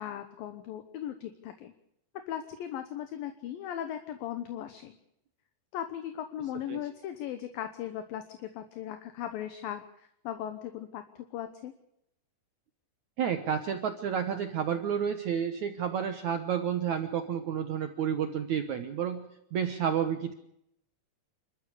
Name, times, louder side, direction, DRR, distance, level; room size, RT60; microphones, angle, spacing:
voice 1, 0.0-1.7 2.3-5.0 5.7-11.7, left 10 dB, 70° left, 9 dB, 2.5 m, -38 dB
voice 2, 13.2-20.3, right 8 dB, 75° right, 7 dB, 1.7 m, -30 dB
28.5 x 13.5 x 6.8 m, 0.79 s
omnidirectional pair, 5.1 m